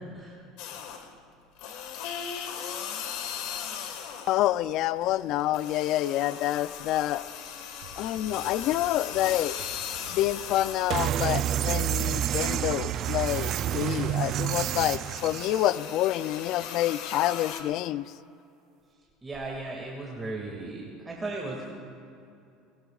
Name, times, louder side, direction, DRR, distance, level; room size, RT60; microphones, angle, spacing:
sound 1, 0.6-1.2 1.6-4.5 4.8-11.5 11.9-17.6, left 8 dB, 75° left, 1.6 m, -38 dB
voice 1, 4.3-7.2 8.0-9.6 10.1-18.0, left 14 dB, 60° left, 16 dB, 0.4 m, -27 dB
sound 2, 7.8-14.9, right 4 dB, 90° right, 4.0 m, -48 dB
sound 3, 10.9-15.7, right 11 dB, 45° right, 0.4 m, -28 dB
voice 2, 19.2-21.7, right 2 dB, 15° right, -3 dB, 2.1 m, -36 dB
28.0 x 18.0 x 2.4 m, 2.6 s
supercardioid pair, 130°, 0 cm